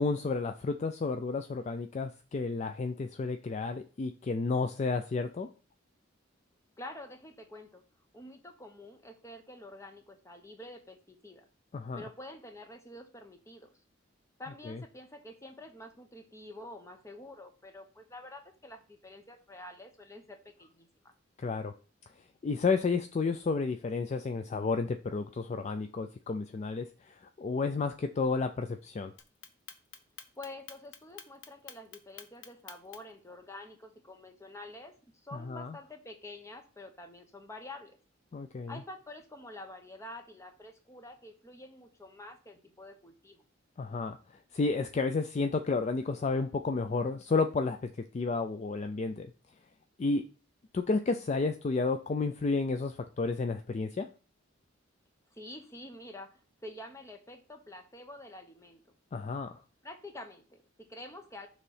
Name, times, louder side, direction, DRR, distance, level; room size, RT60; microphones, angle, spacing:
voice 1, 0.0-5.5 11.7-12.0 14.7-14.8 21.4-21.7 22.4-29.1 35.3-35.8 38.3-38.7 43.8-44.2 44.5-49.3 50.0-50.2 50.7-54.1 59.1-59.6, left 4 dB, 35° left, 7 dB, 0.3 m, -31 dB
voice 2, 6.8-7.8 8.1-11.5 12.0-13.7 14.4-20.9 30.4-38.0 38.7-43.4 55.3-58.8 59.8-61.5, left 1 dB, 15° left, 5 dB, 0.9 m, -48 dB
Clock, 29.2-33.2, left 7 dB, 75° left, 0.9 m, -48 dB
6.7 x 3.1 x 5.5 m, 0.37 s
head